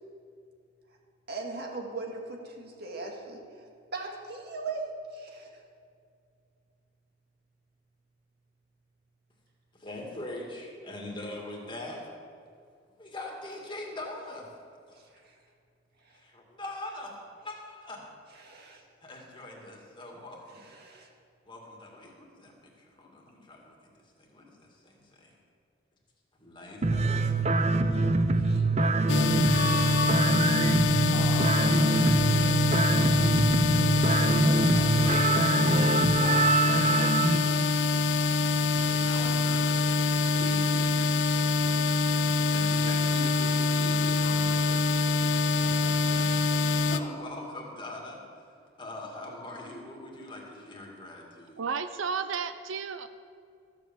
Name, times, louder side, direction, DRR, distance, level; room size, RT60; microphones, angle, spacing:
voice 1, 1.3-3.6 3.9-5.5 18.4-18.8 20.7-21.1, right 3 dB, 55° right, 1 dB, 2.1 m, -38 dB
voice 2, 9.7-12.1 13.0-14.6 14.9-15.0 16.1-18.1 19.0-20.7 21.5-22.5 22.8-23.8 24.2-25.4 26.4-27.3 27.8-30.2 31.1-32.2 34.1-35.4 36.0-37.7 38.7-39.7 40.3-41.1 42.5-44.9 45.4-48.2 48.8-51.6, left 2 dB, 25° left, -1 dB, 2.2 m, -42 dB
sound 1, 26.8-37.4, right 2 dB, 35° right, 0.6 m, -25 dB
sound 2, 29.1-47.0, left 3 dB, 65° left, 0.6 m, -25 dB
voice 3, 51.6-53.1, right 5 dB, 85° right, 11 dB, 0.6 m, -32 dB
14.0 x 7.7 x 7.4 m, 2.3 s
head